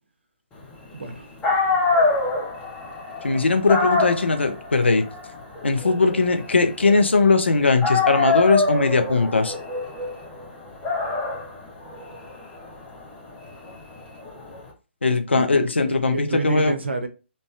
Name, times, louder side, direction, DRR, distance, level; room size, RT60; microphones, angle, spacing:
voice 1, 0.9-1.3 15.3-17.1, right 4 dB, 70° right, 0.5 m, -29 dB
Dog, 1.1-1.2 1.4-7.4 7.8-14.6, left 3 dB, 10° left, 0.8 m, -25 dB
voice 2, 3.2-5.0 5.6-9.5 15.0-16.7, left 3 dB, 70° left, 0.6 m, -19 dB
3.2 x 2.6 x 2.4 m
figure-of-eight pair, 135°, 6 cm